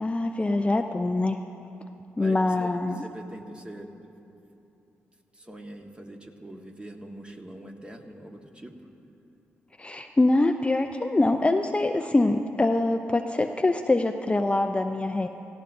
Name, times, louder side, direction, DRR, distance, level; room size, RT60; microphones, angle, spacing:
voice 1, 0.0-1.4 2.2-3.0 9.8-15.3, left 2 dB, 20° left, 6 dB, 0.5 m, -24 dB
voice 2, 2.2-2.7 2.9-4.1 5.3-8.7, right 1 dB, 20° right, 3 dB, 1.4 m, -43 dB
17.5 x 15.0 x 2.6 m, 2.8 s
supercardioid pair, 45°, 5 cm